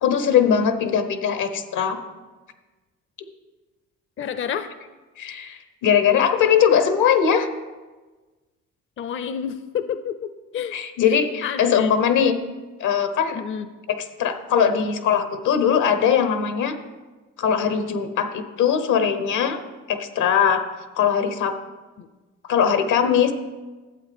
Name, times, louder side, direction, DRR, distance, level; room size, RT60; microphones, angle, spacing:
voice 1, 0.0-2.0 5.2-7.5 10.7-12.4 12.8-13.4 13.9-16.8 17.4-19.6 19.9-20.6 21.0-21.6 22.5-23.3, left 8 dB, 80° left, 9 dB, 1.0 m, -20 dB
voice 2, 4.2-4.7 9.0-10.8 11.1-11.9 13.3-13.7 22.0-22.1, left 8 dB, 40° left, 11 dB, 0.5 m, -30 dB
12.0 x 7.7 x 3.4 m, 1.2 s
cardioid pair, 90°, 30 cm